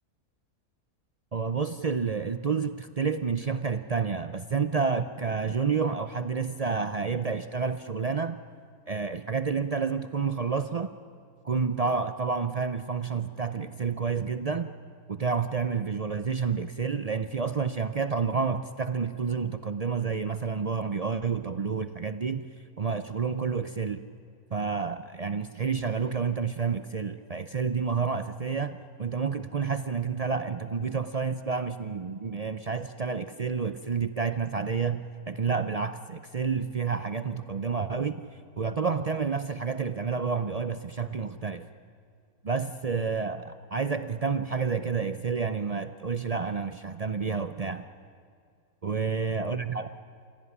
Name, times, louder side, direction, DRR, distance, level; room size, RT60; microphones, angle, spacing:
voice 1, 1.3-8.4 8.9-10.9 11.4-14.7 15.1-22.5 22.8-24.0 24.5-38.2 38.6-41.7 42.4-47.9 48.8-49.9, right 5 dB, 75° right, 10 dB, 0.3 m, -29 dB
28.5 x 16.5 x 9.8 m, 2.3 s
omnidirectional pair, 1.7 m